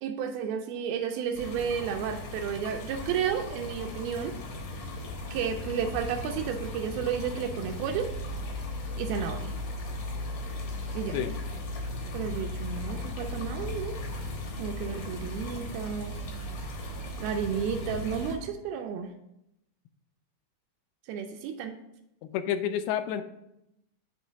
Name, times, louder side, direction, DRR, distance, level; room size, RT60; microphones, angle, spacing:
voice 1, 0.0-4.4 5.3-8.1 9.0-9.5 11.0-11.2 12.1-14.0 14.6-16.2 17.2-19.1 21.1-21.8, right 7 dB, 80° right, 5 dB, 2.2 m, -32 dB
sound 1, 1.3-18.4, left 1 dB, 65° left, 1.8 m, -37 dB
voice 2, 22.2-23.2, left 9 dB, 85° left, 10 dB, 2.5 m, -29 dB
8.4 x 3.1 x 5.5 m, 0.83 s
omnidirectional pair, 4.5 m